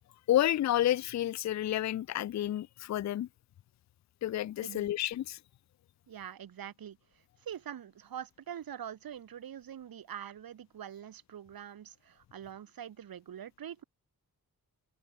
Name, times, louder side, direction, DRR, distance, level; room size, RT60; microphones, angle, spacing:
voice 1, 0.3-3.3 4.2-5.4, left 13 dB, 50° left, 0.5 m, -30 dB
voice 2, 4.6-4.9 6.1-13.8, right 9 dB, 75° right, 5.0 m, -44 dB
wide cardioid pair, 170°, 36 cm